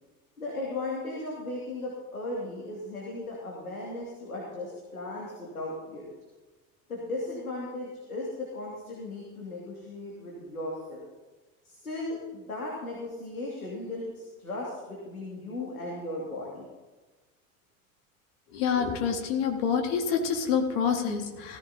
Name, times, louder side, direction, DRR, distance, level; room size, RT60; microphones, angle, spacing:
voice 1, 0.4-6.1 6.9-11.1 11.6-16.7, left 2 dB, 80° left, -4 dB, 2.6 m, -36 dB
voice 2, 18.5-21.6, left 6 dB, 55° left, 4 dB, 2.0 m, -27 dB
17.5 x 15.0 x 2.9 m, 1.2 s
figure-of-eight pair, 70°, 42 cm